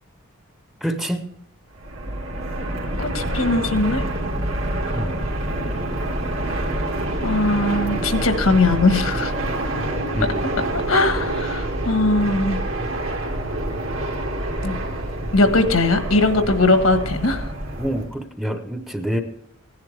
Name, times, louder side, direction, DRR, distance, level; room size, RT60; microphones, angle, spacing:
voice 1, 0.8-1.3 4.9-5.1 10.1-10.4 17.8-19.2, equal, ahead, 6 dB, 0.7 m, -26 dB
Fixed-wing aircraft airplane, 1.7-18.1, right 1 dB, 75° right, 2.2 m, -26 dB
voice 2, 3.0-4.0 7.2-9.3 10.9-12.6 14.6-14.8 15.3-17.5, left 2 dB, 85° left, 7 dB, 1.4 m, -20 dB
16.5 x 10.5 x 3.3 m, 0.76 s
head